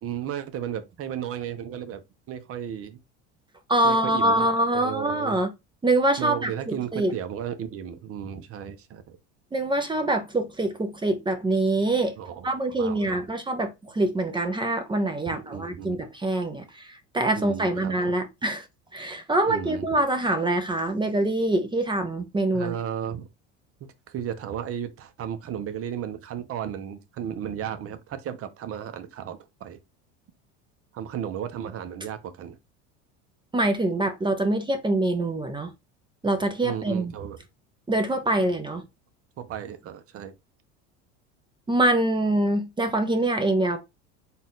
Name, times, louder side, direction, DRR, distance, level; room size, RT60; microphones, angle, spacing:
voice 1, 0.0-2.0 2.3-3.0 3.8-4.5 4.7-5.4 6.2-9.2 12.2-12.5 12.8-13.2 15.3-16.0 17.3-18.0 19.5-19.9 22.5-23.3 24.1-29.8 30.9-32.6 36.6-37.4 39.4-40.3, right 9 dB, 40° right, 0.9 m, -34 dB
voice 2, 3.7-5.5 5.8-7.1 9.5-12.1 12.4-18.6 18.9-22.8 33.5-35.7 36.2-37.1 37.9-38.8 41.7-43.8, right 1 dB, 15° right, 0.7 m, -25 dB
4.1 x 2.5 x 3.9 m
supercardioid pair, 100°, 34 cm